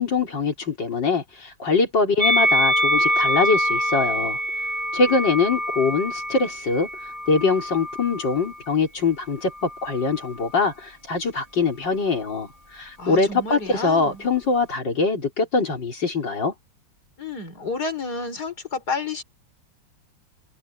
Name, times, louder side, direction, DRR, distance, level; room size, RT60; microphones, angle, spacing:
voice 1, 0.0-4.4 4.9-6.9 7.3-16.5, left 4 dB, 75° left, 4.5 m, -23 dB
Musical instrument, 2.2-8.6 9.4-10.4, equal, 30° right, 6.1 m, -25 dB
voice 2, 13.0-14.2 17.2-19.2, left 4 dB, 60° left, 4.9 m, -30 dB
omnidirectional pair, 2.0 m